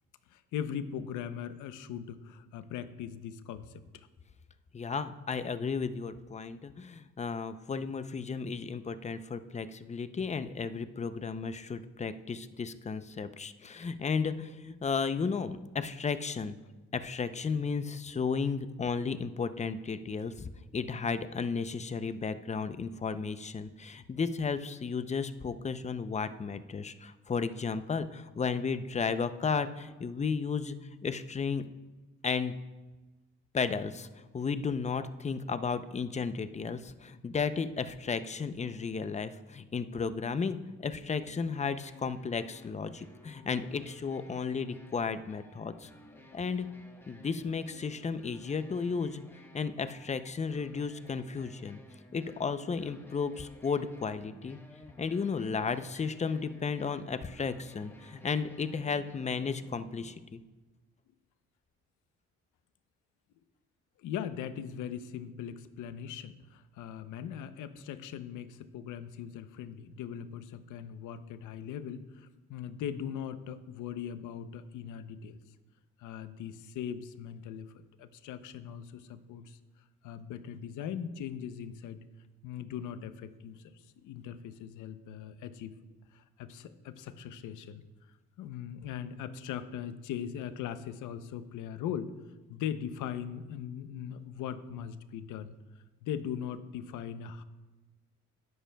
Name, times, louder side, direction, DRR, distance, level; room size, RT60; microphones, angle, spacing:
voice 1, 0.3-4.1 25.5-25.6 64.0-75.4 76.0-77.7 78.0-79.6 80.0-82.0 82.4-83.6 84.0-85.8 86.1-87.8 88.4-92.1 92.5-95.5 96.0-97.4, left 9 dB, 85° left, 12 dB, 0.7 m, -40 dB
voice 2, 4.7-16.6 16.9-30.8 31.0-31.6 32.2-32.5 33.5-34.1 34.3-45.9 46.3-46.7 47.1-49.2 49.5-51.8 52.1-54.6 55.0-60.4, left 5 dB, 25° left, 12 dB, 0.5 m, -34 dB
sound 1, 40.9-60.1, left 1 dB, 5° left, 1.2 m, -56 dB
12.0 x 10.0 x 2.3 m, 1.2 s
cardioid pair, 90°, 30 cm